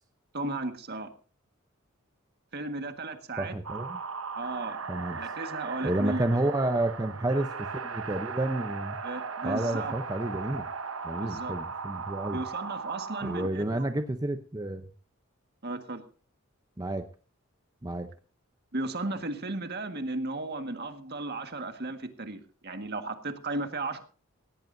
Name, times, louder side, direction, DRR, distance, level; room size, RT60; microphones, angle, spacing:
voice 1, 0.3-1.1 2.5-3.5 4.4-4.8 5.2-6.3 9.0-9.9 11.2-11.5 12.3-13.9 15.6-16.0 18.7-24.0, right 2 dB, 50° right, 7 dB, 1.7 m, -35 dB
voice 2, 3.4-4.0 4.9-5.2 5.8-9.0 9.4-10.7 11.0-12.4 13.2-14.9 16.8-17.1 17.8-18.1, right 1 dB, 20° right, 7 dB, 0.7 m, -30 dB
sound 1, 3.6-13.5, right 5 dB, 70° right, 1.0 m, -37 dB
18.0 x 17.0 x 2.7 m, 0.38 s
head